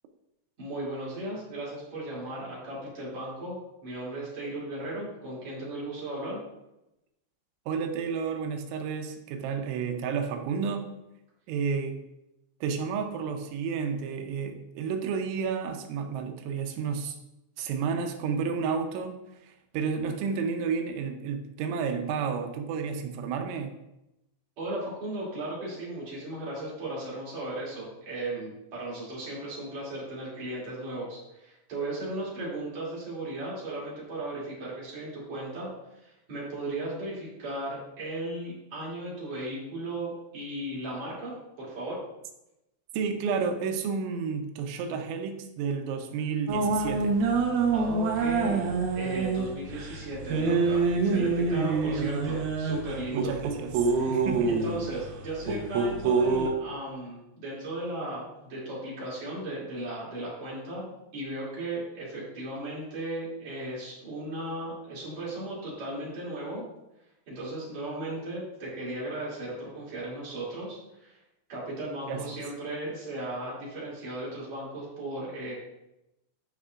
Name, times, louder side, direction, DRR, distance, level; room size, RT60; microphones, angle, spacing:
voice 1, 0.6-6.4 24.6-42.0 47.7-53.3 53.9-54.2 54.5-66.7 67.3-71.2 71.5-75.5, right 1 dB, 40° right, -7 dB, 3.5 m, -36 dB
voice 2, 7.7-10.9 11.5-12.0 12.6-17.2 17.6-19.2 19.4-23.8 42.9-47.2 53.1-54.5 72.1-72.3, right 6 dB, 90° right, 5 dB, 3.2 m, -31 dB
sound 1, 46.5-56.5, right 4 dB, 75° right, 2.4 m, -26 dB
12.0 x 5.2 x 2.5 m, 0.91 s
omnidirectional pair, 5.3 m